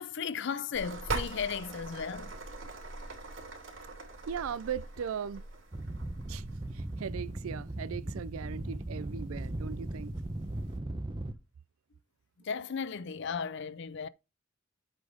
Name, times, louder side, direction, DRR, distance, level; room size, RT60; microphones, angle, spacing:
voice 1, 0.0-2.3 12.4-14.1, left 6 dB, 55° left, 0.5 m, -35 dB
sound 1, 0.7-10.8, right 3 dB, 70° right, 2.9 m, -43 dB
voice 2, 4.3-5.4 6.3-6.4 6.7-10.1, right 7 dB, 90° right, 0.4 m, -38 dB
sound 2, 5.7-11.3, right 1 dB, 25° right, 0.7 m, -38 dB
8.0 x 4.0 x 5.0 m
head